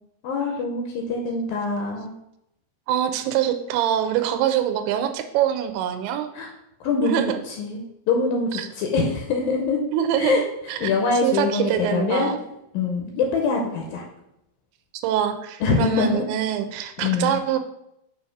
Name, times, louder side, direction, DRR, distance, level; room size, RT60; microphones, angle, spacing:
voice 1, 0.2-2.2 6.3-6.5 6.8-9.8 10.2-12.3 12.7-14.0 15.6-16.3 17.0-17.4, left 4 dB, 80° left, 1 dB, 2.2 m, -24 dB
voice 2, 2.9-6.3 7.0-7.4 8.5-8.7 9.9-10.4 10.7-10.9 11.2-12.4 14.9-17.6, right 10 dB, 90° right, 7 dB, 2.6 m, -24 dB
7.1 x 2.8 x 5.9 m, 0.82 s
omnidirectional pair, 4.5 m